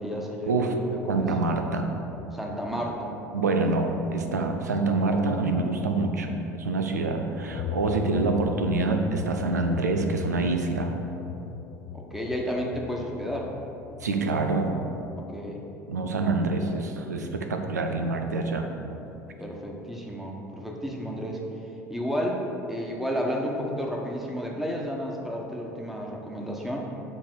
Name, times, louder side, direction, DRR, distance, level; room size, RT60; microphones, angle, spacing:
voice 1, 0.0-1.3 2.3-3.1 11.9-13.5 15.3-15.7 19.4-21.4 21.9-26.9, equal, ahead, -1 dB, 1.3 m, -32 dB
voice 2, 1.1-1.9 3.3-11.0 14.0-14.8 15.9-18.7, right 3 dB, 85° right, 5 dB, 0.6 m, -26 dB
sound 1, 7.5-14.4, left 9 dB, 55° left, 0.3 m, -37 dB
7.5 x 3.4 x 6.4 m, 3.0 s
hypercardioid pair, 70°, 9 cm